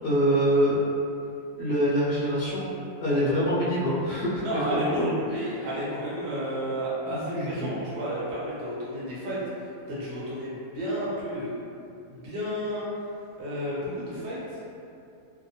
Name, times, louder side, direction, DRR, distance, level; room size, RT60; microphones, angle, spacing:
voice 1, 0.0-0.8 1.6-2.7 3.0-5.7 7.1-7.8, equal, 50° left, -10 dB, 0.7 m, -25 dB
voice 2, 4.4-9.4 9.9-11.5 12.1-12.8 13.4-14.6, equal, 55° right, -8 dB, 0.9 m, -31 dB
2.6 x 2.2 x 2.7 m, 2.6 s
omnidirectional pair, 1.6 m